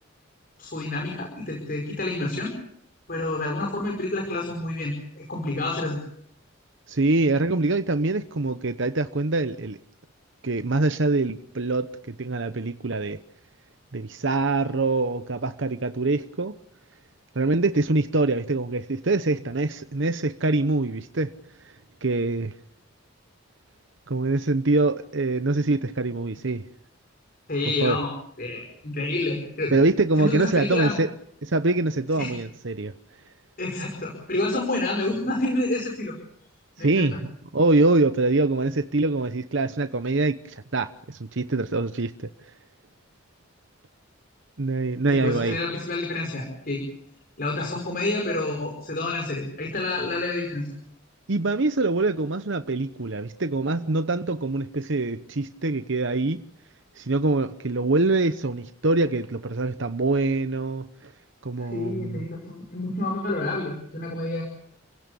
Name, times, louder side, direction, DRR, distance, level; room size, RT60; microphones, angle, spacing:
voice 1, 0.6-2.6 3.1-6.0 27.5-28.1 28.4-29.8 30.2-31.0 32.2-32.3 33.6-36.1 36.8-37.2 45.1-46.9 47.4-50.8 61.6-64.4, left 2 dB, 45° left, 5.2 m, -28 dB
voice 2, 6.9-9.8 10.4-13.2 13.9-16.5 17.3-21.3 22.0-22.5 24.1-26.7 27.8-28.0 29.7-31.1 31.4-32.9 36.8-37.2 37.5-42.3 44.6-45.6 51.3-56.4 57.0-61.1 61.4-62.3, right 2 dB, 65° right, 0.9 m, -24 dB
29.0 x 16.5 x 7.0 m
head